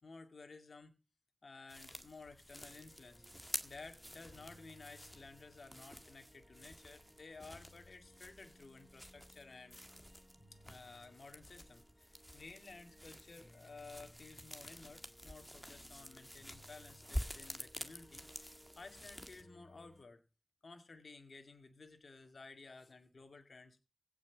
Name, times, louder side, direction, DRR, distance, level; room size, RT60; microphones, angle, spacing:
voice 1, 0.0-0.9 1.4-3.2 3.6-9.8 10.5-20.2 20.6-23.8, left 3 dB, 65° left, 6 dB, 2.3 m, -55 dB
sound 1, 1.7-19.4, equal, 5° left, 1.9 m, -49 dB
sound 2, 2.5-20.0, equal, 10° right, 5.3 m, -65 dB
16.5 x 6.3 x 6.2 m, 0.30 s
wide cardioid pair, 85°, 0 cm